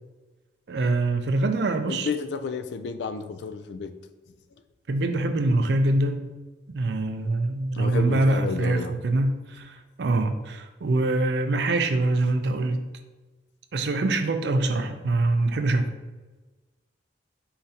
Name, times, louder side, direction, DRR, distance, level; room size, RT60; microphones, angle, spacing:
voice 1, 0.7-2.1 4.9-6.3 6.7-12.9 13.7-15.9, right 2 dB, 60° right, 7 dB, 0.4 m, -24 dB
voice 2, 1.9-3.9 7.7-9.0, left 5 dB, 65° left, 9 dB, 0.3 m, -31 dB
4.4 x 3.8 x 2.7 m, 1.2 s
head